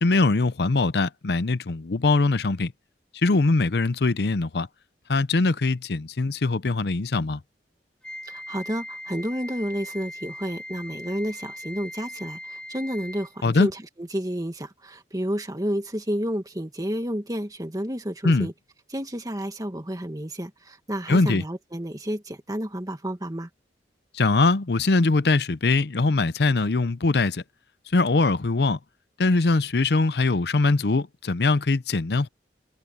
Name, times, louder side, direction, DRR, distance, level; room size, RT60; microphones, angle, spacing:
voice 1, 0.0-2.7 3.2-4.7 5.1-7.4 13.4-13.7 18.2-18.5 21.1-21.4 24.1-27.4 27.9-28.8 29.2-32.3, left 3 dB, 65° left, 0.7 m, -22 dB
Wind instrument woodwind instrument, 8.0-13.4, left 1 dB, 5° left, 5.6 m, -39 dB
voice 2, 8.2-18.5 18.9-23.5, equal, 20° right, 2.0 m, -30 dB
head